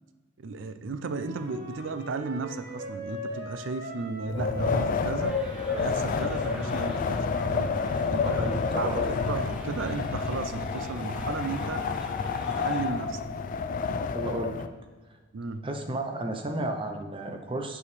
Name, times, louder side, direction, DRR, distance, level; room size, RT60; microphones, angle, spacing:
voice 1, 0.4-5.3 5.8-7.7 8.1-8.5 8.8-11.8 12.6-13.2 15.3-15.6, right 4 dB, 75° right, 10 dB, 0.5 m, -34 dB
Wind instrument woodwind instrument, 1.0-7.3, equal, 55° right, 1.3 m, -41 dB
Wind, 4.3-14.7, left 5 dB, 45° left, 0.3 m, -29 dB
sound 1, 5.2-12.9, equal, 5° right, 0.9 m, -44 dB
voice 2, 8.1-9.2 14.1-14.7 15.6-17.8, right 2 dB, 30° right, 4 dB, 0.7 m, -33 dB
8.2 x 4.9 x 3.3 m, 1.4 s
head